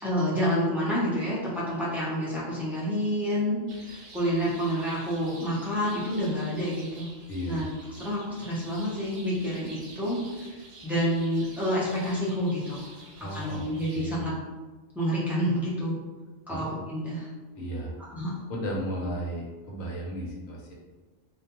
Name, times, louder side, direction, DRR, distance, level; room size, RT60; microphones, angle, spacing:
voice 1, 0.0-7.1 7.5-7.7 8.0-10.6 10.8-12.9 13.3-14.3 14.9-16.0 16.5-17.3 18.1-18.3, equal, 5° right, -9 dB, 0.3 m, -28 dB
sound 1, 3.7-14.2, right 2 dB, 85° right, 1.0 m, -49 dB
voice 2, 7.3-8.0 13.2-14.3 16.5-16.7 17.6-18.0 18.5-20.7, equal, 90° left, -2 dB, 1.1 m, -35 dB
2.4 x 2.2 x 2.9 m, 1.3 s
omnidirectional pair, 1.3 m